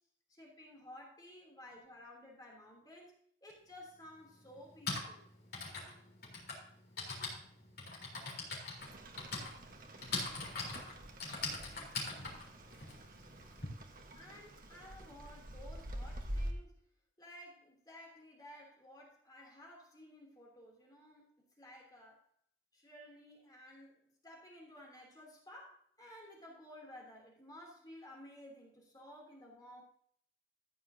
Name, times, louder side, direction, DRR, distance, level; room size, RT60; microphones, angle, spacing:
voice 1, 0.3-3.1 3.4-5.2 14.1-16.8 17.2-22.3 22.7-29.8, left 1 dB, 20° left, -2 dB, 2.9 m, -55 dB
Typing, 3.5-3.6 4.6-13.7, left 3 dB, 60° left, 3.7 m, -42 dB
Rain, 8.8-16.5, equal, 55° right, 1.3 m, -47 dB
14.0 x 9.3 x 2.8 m, 0.64 s
head